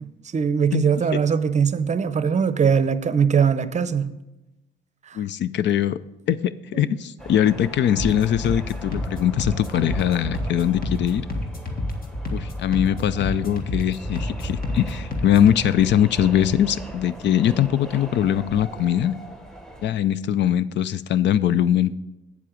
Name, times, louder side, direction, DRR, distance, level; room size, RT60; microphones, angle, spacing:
voice 1, 0.3-4.2 5.1-5.2 6.7-6.9, right 6 dB, 35° right, 13 dB, 0.6 m, -21 dB
voice 2, 5.1-6.0 6.3-11.3 12.3-19.1 19.8-21.9, left 10 dB, 65° left, 16 dB, 0.4 m, -21 dB
sound 1, 7.2-19.9, right 1 dB, 5° left, 1.0 m, -39 dB
sound 2, 8.0-15.6, left 1 dB, 50° left, 1.7 m, -30 dB
8.2 x 7.4 x 5.0 m, 0.99 s
cardioid pair, 90°, 20 cm